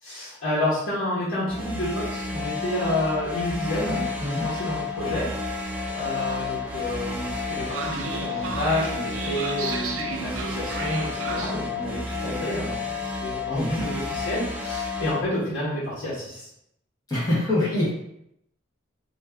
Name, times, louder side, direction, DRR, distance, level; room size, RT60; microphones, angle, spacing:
voice 1, 0.0-5.3 6.0-16.5, left 1 dB, 70° left, -9 dB, 1.0 m, -29 dB
sound 1, 1.5-15.2, left 4 dB, 5° right, 0.3 m, -31 dB
Train, 5.1-11.5, right 5 dB, 85° right, 0.4 m, -36 dB
voice 2, 13.5-13.8 17.1-17.9, left 1 dB, 20° left, -9 dB, 0.8 m, -24 dB
2.5 x 2.3 x 3.3 m, 0.79 s
head